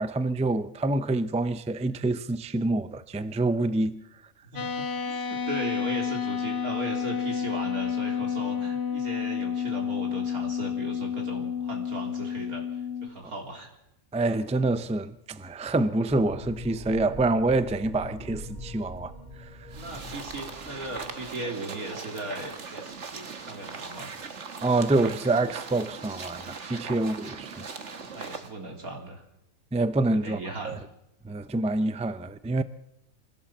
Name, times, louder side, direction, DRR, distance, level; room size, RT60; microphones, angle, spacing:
voice 1, 0.0-4.0 14.1-19.1 24.6-27.7 29.7-30.4 30.6-30.8 31.2-32.6, right 2 dB, 10° right, 0.4 m, -26 dB
voice 2, 4.4-13.7 19.8-24.1 26.8-27.0 28.1-29.2 30.1-30.8, right 2 dB, 85° right, 3.9 m, -38 dB
sound 1, 4.6-13.1, left 7 dB, 50° left, 1.7 m, -30 dB
sound 2, 16.0-21.1, left 1 dB, 25° right, 6.6 m, -42 dB
sound 3, 19.7-28.5, right 5 dB, 55° right, 1.8 m, -40 dB
24.0 x 16.0 x 7.4 m
omnidirectional pair, 1.5 m